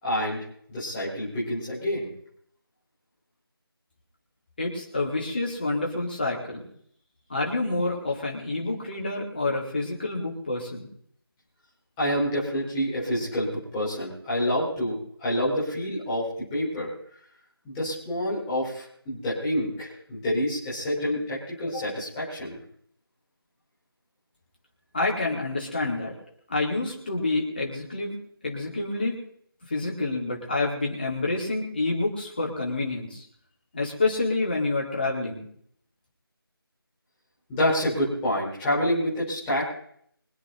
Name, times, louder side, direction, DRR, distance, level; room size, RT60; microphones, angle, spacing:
voice 1, 0.0-0.4 0.7-2.1 12.0-16.9 17.6-22.6 37.5-39.7, equal, 5° left, -8 dB, 4.8 m, -27 dB
voice 2, 4.6-6.7 7.3-10.9 24.9-26.1 26.5-28.1 28.4-29.2 29.7-33.2 33.7-35.4, left 2 dB, 25° left, -2 dB, 4.4 m, -28 dB
26.0 x 9.0 x 4.2 m, 0.65 s
figure-of-eight pair, 170°, 13 cm